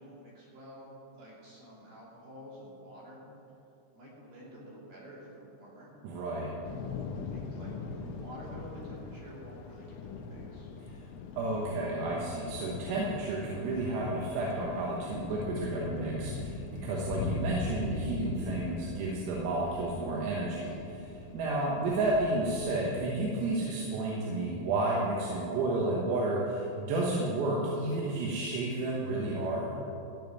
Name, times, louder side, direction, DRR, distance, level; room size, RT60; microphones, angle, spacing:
voice 1, 0.0-3.2 3.9-5.9 7.0-10.7, right 1 dB, 50° right, -6 dB, 4.1 m, -49 dB
voice 2, 6.0-6.6 11.4-29.8, right 2 dB, 85° right, -4 dB, 4.0 m, -31 dB
Thunder / Rain, 6.6-22.8, left 4 dB, 85° left, 3.4 m, -40 dB
14.5 x 5.3 x 9.3 m, 2.8 s
omnidirectional pair, 6.0 m